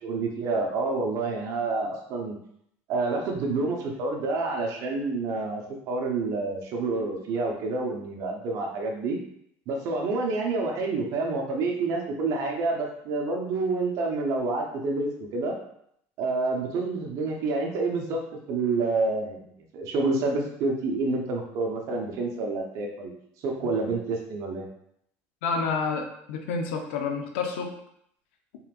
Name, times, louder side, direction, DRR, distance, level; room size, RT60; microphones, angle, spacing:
voice 1, 0.0-2.4 2.9-9.2 9.7-15.5 16.2-18.2 18.5-23.1 23.4-24.7, right 3 dB, 60° right, 1 dB, 1.0 m, -28 dB
voice 2, 25.4-27.7, left 4 dB, 90° left, 3 dB, 0.7 m, -29 dB
4.2 x 3.9 x 2.5 m, 0.70 s
supercardioid pair, 110°, 6 cm